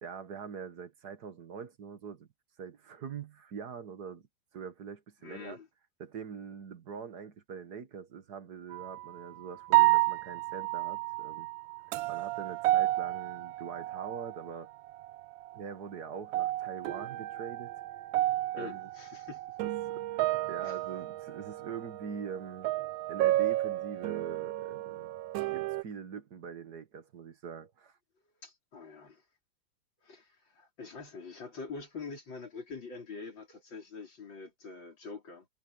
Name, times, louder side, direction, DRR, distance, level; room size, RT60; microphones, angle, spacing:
voice 1, 0.0-2.3 2.6-4.3 4.5-5.6 6.0-11.5 12.1-14.7 15.5-17.7 18.5-18.9 19.6-22.7 23.1-25.1 25.5-28.0, right 6 dB, 60° right, 1.9 m, -43 dB
voice 2, 5.2-5.7 18.6-19.4 20.6-20.8 28.4-29.3 30.0-35.5, left 4 dB, 75° left, 4.7 m, -45 dB
sound 1, 8.7-9.1 9.7-14.6 14.9-15.7 16.1-25.8, right 17 dB, 90° right, 1.3 m, -31 dB
omnidirectional pair, 2.1 m